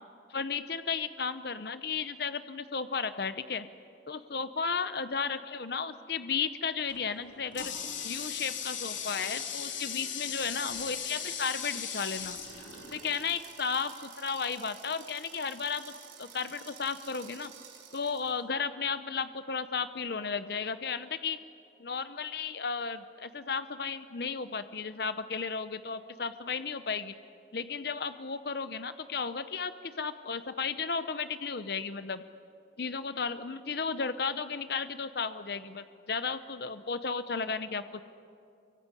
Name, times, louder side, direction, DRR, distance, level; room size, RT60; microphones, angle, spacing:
voice 1, 0.3-3.7 4.1-7.7 8.0-12.4 12.9-15.9 16.2-17.5 17.9-21.4 21.8-27.1 27.5-32.2 32.8-38.0, left 5 dB, 55° left, 11 dB, 0.8 m, -34 dB
Water tap faucet, 6.9-13.4, left 7 dB, 90° left, 3.2 m, -38 dB
sound 1, 10.6-18.4, right 8 dB, 70° right, 4.4 m, -51 dB
24.5 x 24.0 x 9.9 m, 2.5 s
head